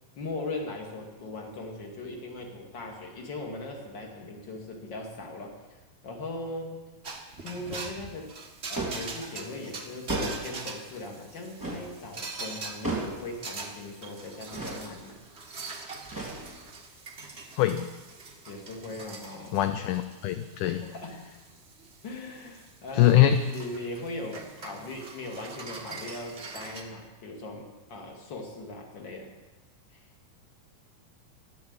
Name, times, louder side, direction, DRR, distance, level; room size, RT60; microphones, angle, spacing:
voice 1, 0.2-5.6 6.0-6.8 7.4-8.3 8.7-15.2 18.5-19.7 20.6-21.3 22.0-29.3 29.9-30.0, left 2 dB, 35° left, 1 dB, 2.7 m, -39 dB
sound 1, 7.0-26.8, right 3 dB, 75° right, 0.6 m, -43 dB
sound 2, 8.8-9.1 10.1-10.6 11.6-11.9 12.8-13.3 14.5-14.9 16.1-16.7, right 2 dB, 5° right, 2.3 m, -33 dB
voice 2, 17.6-17.9 19.5-20.8 22.9-23.4, left 12 dB, 75° left, 9 dB, 1.9 m, -22 dB
14.0 x 12.0 x 8.0 m, 1.2 s
omnidirectional pair, 4.2 m